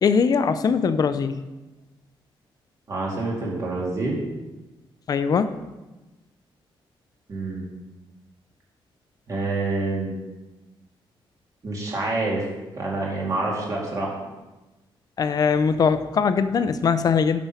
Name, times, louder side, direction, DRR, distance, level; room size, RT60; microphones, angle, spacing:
voice 1, 0.0-1.3 5.1-5.5 15.2-17.4, left 6 dB, 45° left, 12 dB, 0.5 m, -21 dB
voice 2, 2.9-4.2 7.3-7.6 9.3-10.1 11.6-12.4 12.8-14.2, right 2 dB, 40° right, -3 dB, 2.4 m, -27 dB
8.9 x 6.2 x 5.6 m, 1.1 s
wide cardioid pair, 160°, 9 cm